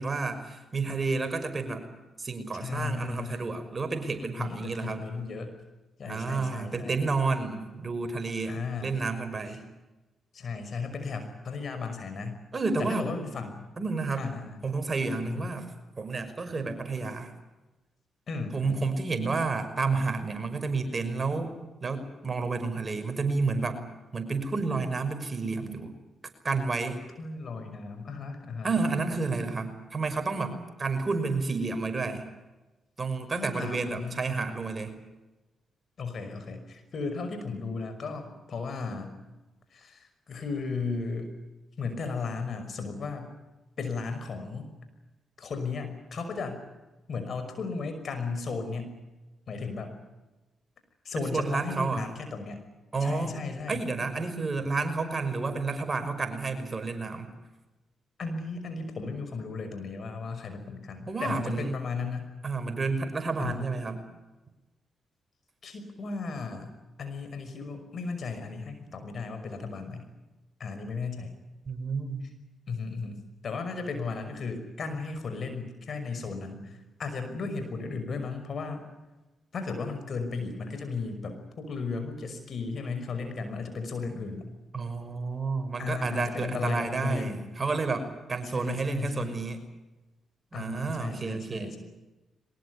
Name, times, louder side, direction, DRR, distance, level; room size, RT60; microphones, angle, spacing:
voice 1, 0.0-1.9 2.2-5.0 6.1-9.6 12.5-13.1 13.8-14.3 14.6-15.7 16.0-17.3 18.5-21.5 21.8-23.8 24.1-25.9 26.4-27.0 28.6-32.2 33.0-34.9 51.3-52.1 52.9-53.4 53.7-57.3 61.1-61.7 62.4-64.0 71.7-72.3 84.7-89.6 90.5-91.7, right 4 dB, 40° right, 7 dB, 5.8 m, -30 dB
voice 2, 2.6-3.5 4.4-5.6 6.0-7.0 8.5-9.0 10.3-12.4 12.8-13.7 14.2-14.5 15.2-15.5 18.3-18.9 27.2-28.7 33.4-34.2 36.0-39.1 39.7-41.3 41.8-43.3 43.8-44.7 45.4-46.6 47.1-49.0 49.5-49.9 51.0-52.6 53.0-53.8 58.2-62.3 63.4-63.7 65.6-66.7 67.0-70.1 70.6-71.3 72.7-78.8 79.5-84.4 85.8-87.4 88.5-89.4 90.5-91.8, left 4 dB, 55° left, 8 dB, 5.7 m, -35 dB
23.0 x 20.5 x 9.7 m, 1.1 s
hypercardioid pair, 45°, 0 cm